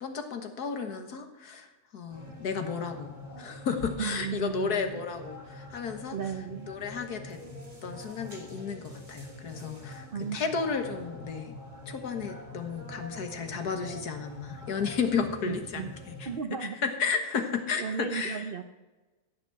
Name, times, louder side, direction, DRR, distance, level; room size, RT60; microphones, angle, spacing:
voice 1, 0.0-6.2 6.7-7.4 7.8-10.1 10.3-11.6 11.9-16.3 16.6-18.5, left 5 dB, 65° left, 6 dB, 1.8 m, -33 dB
sound 1, 2.1-16.4, left 1 dB, 25° right, 2.3 m, -45 dB
voice 2, 4.0-5.0 6.1-6.7 10.1-10.5 15.4-15.9 16.3-16.8 17.8-18.6, right 7 dB, 65° right, 8 dB, 0.5 m, -35 dB
15.5 x 6.1 x 7.6 m, 1.2 s
omnidirectional pair, 1.9 m